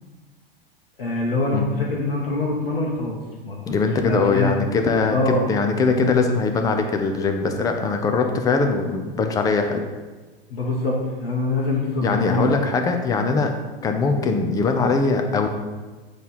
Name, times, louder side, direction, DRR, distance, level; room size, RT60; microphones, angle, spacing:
voice 1, 1.0-3.2 3.4-4.6 5.1-5.4 10.5-12.5 13.2-13.3, left 2 dB, 70° left, -2 dB, 1.0 m, -24 dB
voice 2, 3.7-9.8 12.0-13.5 13.8-15.5, left 4 dB, 10° left, 5 dB, 0.5 m, -21 dB
7.8 x 3.2 x 4.1 m, 1.3 s
figure-of-eight pair, 90°, 30 cm